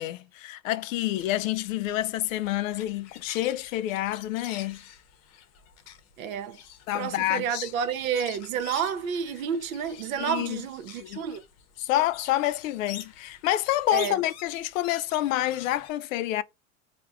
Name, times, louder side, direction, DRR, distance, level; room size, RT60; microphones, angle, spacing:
voice 1, 0.0-4.8 6.9-7.7 10.2-10.6 11.0-11.2 11.8-16.4, left 14 dB, 75° left, 0.5 m, -28 dB
sound 1, 1.1-15.9, left 10 dB, 40° left, 0.7 m, -47 dB
voice 2, 6.2-6.6 6.9-11.4 13.9-14.2, right 8 dB, 80° right, 0.7 m, -30 dB
4.9 x 2.2 x 2.4 m
hypercardioid pair, 105°, 41 cm